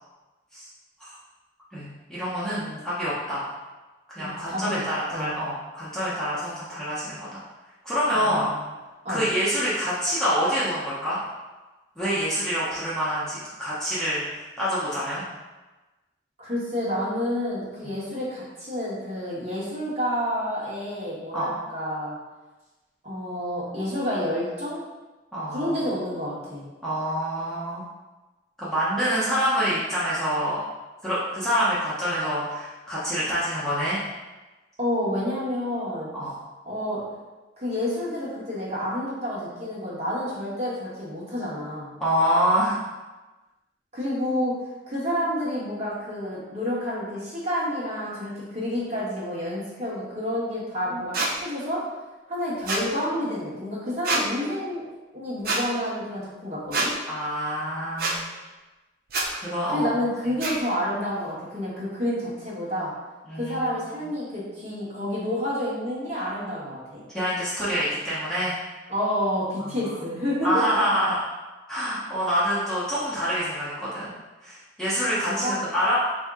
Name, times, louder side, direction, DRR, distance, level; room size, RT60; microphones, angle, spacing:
voice 1, 1.7-3.4 4.1-7.4 7.8-8.5 9.1-11.2 12.0-15.2 21.3-21.5 25.3-25.8 26.8-27.8 28.6-30.6 31.0-34.0 36.1-36.3 42.0-42.8 57.1-58.2 59.3-59.9 63.3-63.7 67.1-68.5 69.6-69.9 70.4-71.2 71.7-74.1 74.4-76.0, equal, 5° left, -11 dB, 0.8 m, -26 dB
voice 2, 4.2-4.8 5.1-5.3 8.1-8.5 9.0-9.2 16.4-22.2 23.0-24.8 25.5-26.7 34.8-36.1 36.7-37.0 37.6-41.9 43.9-44.5 44.9-51.8 52.3-54.9 55.1-56.9 59.6-62.9 63.3-67.0 68.9-70.6 75.1-75.7, equal, 35° right, -7 dB, 1.3 m, -29 dB
sound 1, 51.1-51.3 52.7-52.9 54.0-54.2 55.4-55.6 56.7-56.9 58.0-58.2 59.1-59.3 60.4-60.5, right 2 dB, 50° right, 0.6 m, -25 dB
4.3 x 2.7 x 3.5 m, 1.2 s
head